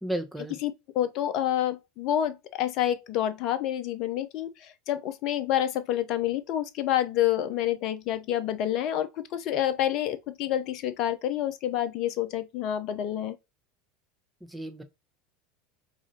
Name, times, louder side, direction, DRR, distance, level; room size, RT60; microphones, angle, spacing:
voice 1, 0.0-0.6 14.5-14.8, right 1 dB, 5° right, 0.8 m, -33 dB
voice 2, 0.6-13.4, left 11 dB, 50° left, 0.5 m, -28 dB
4.8 x 2.5 x 2.4 m
figure-of-eight pair, 75°, 0 cm